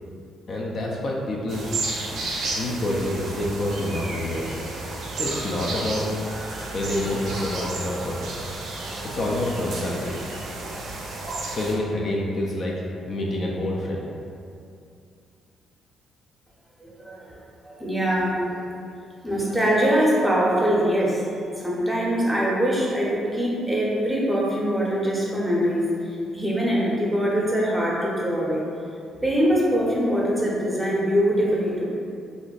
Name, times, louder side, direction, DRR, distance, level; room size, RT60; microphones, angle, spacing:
voice 1, 0.5-1.7 2.5-4.5 5.2-6.1 6.6-8.2 9.0-10.2 11.6-12.7 13.0-14.1, left 1 dB, 50° left, -2 dB, 0.4 m, -27 dB
sound 1, 1.5-11.8, right 2 dB, 70° right, 0.4 m, -32 dB
voice 2, 16.8-17.4 17.6-18.4 19.2-21.2 21.6-28.6 29.2-31.9, equal, 5° right, -5 dB, 0.7 m, -23 dB
2.5 x 2.1 x 3.8 m, 2.4 s
cardioid pair, 90°, 0 cm